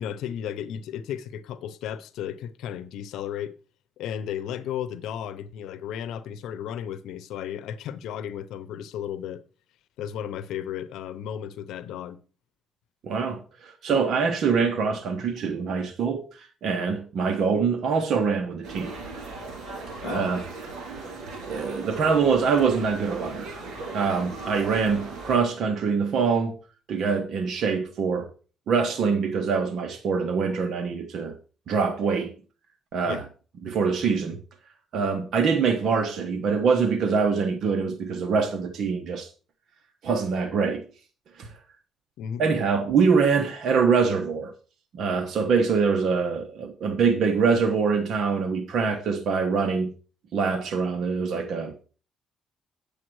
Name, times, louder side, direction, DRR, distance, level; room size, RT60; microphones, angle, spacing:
voice 1, 0.0-3.6 4.0-9.4 10.0-12.2 20.0-20.3 33.0-33.3 42.2-42.4, left 9 dB, 90° left, 0.7 m, -34 dB
voice 2, 13.0-18.9 20.0-20.4 21.4-23.5 23.9-26.6 26.9-28.3 28.7-31.4 31.7-32.3 32.9-33.2 33.6-34.4 34.9-39.3 40.0-40.8 41.4-41.5 42.4-44.5 44.9-49.9 50.3-51.8, right 5 dB, 65° right, 1.1 m, -24 dB
sound 1, 18.6-25.4, right 3 dB, 80° right, 4.2 m, -38 dB
8.8 x 7.0 x 4.7 m
cardioid pair, 90°, 0 cm